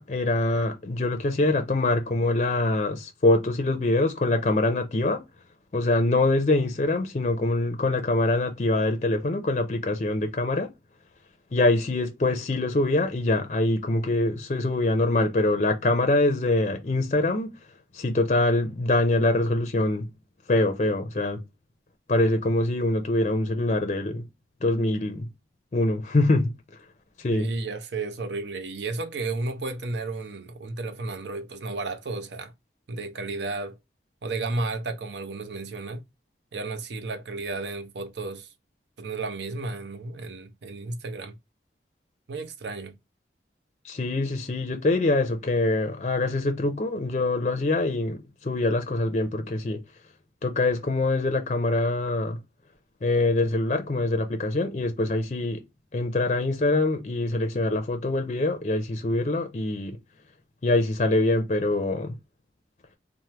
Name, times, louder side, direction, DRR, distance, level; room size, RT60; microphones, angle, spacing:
voice 1, 0.0-5.2 5.7-10.7 11.5-17.5 17.9-20.1 20.5-21.4 22.1-24.2 24.6-25.3 25.7-26.5 27.2-27.5 43.8-49.8 50.4-52.4 53.0-55.6 55.9-60.0 60.6-62.1, left 2 dB, 40° left, 0.4 m, -24 dB
voice 2, 27.3-32.5 32.9-33.8 34.2-36.0 36.5-38.5 39.0-41.4 42.3-42.9, right 3 dB, 80° right, 0.6 m, -33 dB
3.3 x 2.0 x 2.8 m
head